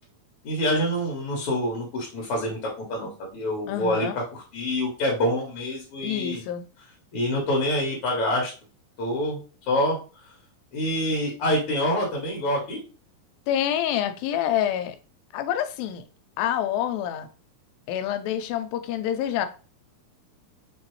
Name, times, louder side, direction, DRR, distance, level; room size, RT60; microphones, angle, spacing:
voice 1, 0.4-6.4 7.1-8.5 9.0-9.4 9.7-10.0 10.7-12.8, left 1 dB, 65° left, 1.4 m, -26 dB
voice 2, 3.7-4.2 6.0-6.7 13.5-15.0 15.3-16.0 16.4-17.3 17.9-19.5, left 10 dB, 85° left, 2.3 m, -27 dB
5.9 x 2.9 x 3.1 m
omnidirectional pair, 4.1 m